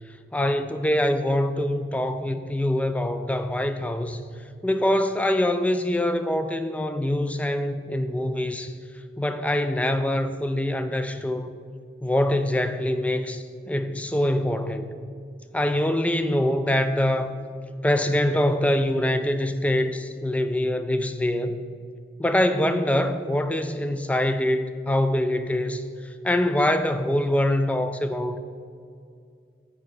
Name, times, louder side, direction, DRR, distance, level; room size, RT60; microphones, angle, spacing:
voice 1, 0.3-4.2 4.6-8.7 9.2-11.5 12.0-14.9 15.5-17.3 17.8-21.6 22.2-25.8 26.2-28.4, left 1 dB, 10° left, 9 dB, 0.3 m, -24 dB
7.3 x 5.3 x 5.5 m, 2.3 s
head